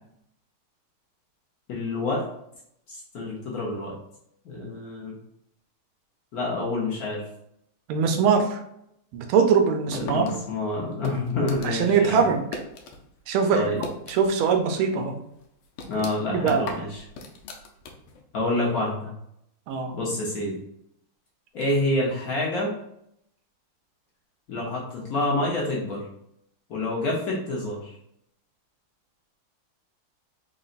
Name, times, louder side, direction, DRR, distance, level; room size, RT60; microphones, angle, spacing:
voice 1, 1.7-2.3 2.9-3.9 4.4-5.1 6.3-7.2 9.9-12.3 13.5-13.8 15.9-17.0 18.3-19.1 19.9-20.6 21.5-22.7 24.5-26.0 26.7-27.9, left 2 dB, 55° left, -3 dB, 1.2 m, -27 dB
voice 2, 7.9-8.6 9.1-10.3 11.6-12.4 13.3-13.7 14.1-15.1 16.3-16.7 19.7-19.9, right 6 dB, 90° right, 5 dB, 1.5 m, -22 dB
sound 1, 9.9-13.0 13.3-14.5 14.8-14.9 15.4-18.2, left 3 dB, 90° left, 1.6 m, -39 dB
4.0 x 3.9 x 2.5 m, 0.76 s
omnidirectional pair, 2.3 m